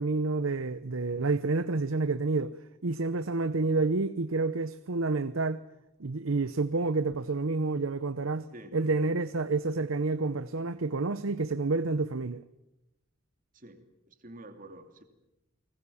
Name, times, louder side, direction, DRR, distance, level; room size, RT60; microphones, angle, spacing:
voice 1, 0.0-2.6 2.8-5.6 6.0-12.4, right 3 dB, 75° right, 0.8 m, -29 dB
voice 2, 13.5-15.0, right 1 dB, 40° right, 2.8 m, -48 dB
29.5 x 20.5 x 7.1 m
head